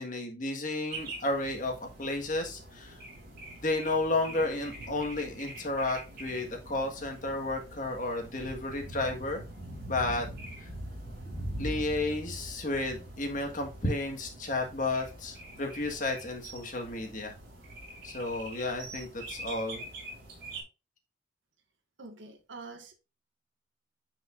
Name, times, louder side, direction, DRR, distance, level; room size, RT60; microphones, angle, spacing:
voice 1, 0.0-2.9 3.6-9.4 9.9-10.3 11.6-17.4 18.0-19.8, left 2 dB, 40° left, 1.7 m, -32 dB
sound 1, 0.9-20.6, right 1 dB, 50° right, 3.7 m, -43 dB
voice 2, 22.0-22.9, right 3 dB, 75° right, 1.8 m, -45 dB
9.8 x 5.4 x 2.6 m
head